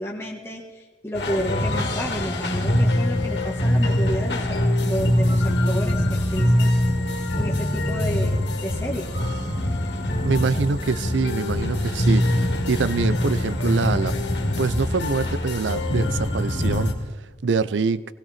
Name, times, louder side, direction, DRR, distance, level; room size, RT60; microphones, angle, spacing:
voice 1, 0.0-6.7 7.1-9.1, equal, 15° left, -2 dB, 1.5 m, -31 dB
sound 1, 1.1-16.9, left 1 dB, 75° left, 2.3 m, -23 dB
voice 2, 10.2-14.2 14.6-17.2 17.4-18.0, right 4 dB, 85° right, 16 dB, 0.5 m, -25 dB
19.5 x 16.5 x 4.3 m, 1.2 s
head